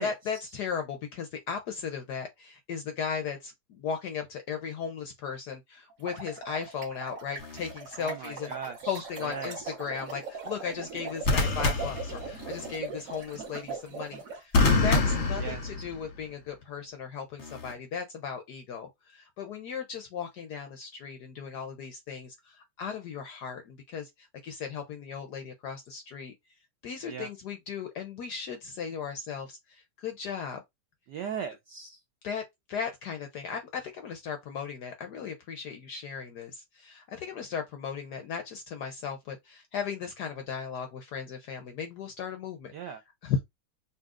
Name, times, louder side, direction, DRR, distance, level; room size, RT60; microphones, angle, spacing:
voice 1, 0.0-8.5 8.8-26.3 26.8-30.6 32.2-43.0 43.2-43.4, left 6 dB, 70° left, 0.9 m, -36 dB
sound 1, 5.9-14.4, right 4 dB, 45° right, 1.3 m, -40 dB
sound 2, 7.4-7.7 11.2-12.7 14.5-16.2 17.4-17.7, left 3 dB, 45° left, 0.9 m, -27 dB
voice 2, 8.0-9.7 15.4-15.6 27.1-27.3 31.1-32.0 42.7-43.0, right 7 dB, 80° right, 0.9 m, -38 dB
5.4 x 2.7 x 2.4 m
omnidirectional pair, 2.4 m